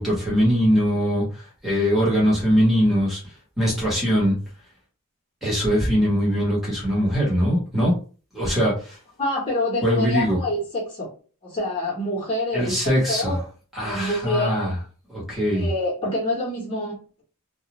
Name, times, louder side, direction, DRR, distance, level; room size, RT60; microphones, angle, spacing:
voice 1, 0.0-3.2 3.6-4.3 5.4-7.9 8.3-9.0 9.8-10.4 12.5-13.4 13.7-14.8 15.1-15.7, equal, ahead, -7 dB, 1.1 m, -21 dB
voice 2, 9.2-11.1 11.4-12.8 13.1-13.4 13.8-14.7 15.5-17.0, left 1 dB, 25° left, -5 dB, 0.9 m, -26 dB
2.3 x 2.2 x 2.9 m, 0.37 s
head